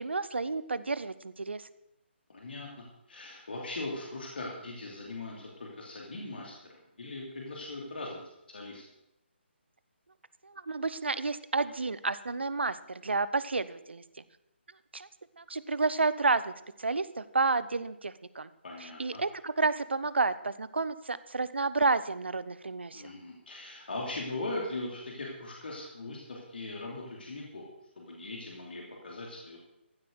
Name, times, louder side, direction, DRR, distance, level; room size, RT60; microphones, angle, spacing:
voice 1, 0.0-1.7 10.4-14.0 14.9-15.1 15.4-16.5 16.8-18.5 18.8-23.1, right 3 dB, 65° right, 16 dB, 0.8 m, -30 dB
voice 2, 2.3-8.2 8.5-8.8 18.6-19.2 22.9-27.7 28.0-29.6, left 2 dB, 55° left, -1 dB, 2.8 m, -40 dB
15.0 x 8.5 x 6.5 m, 0.86 s
figure-of-eight pair, 145°, 6 cm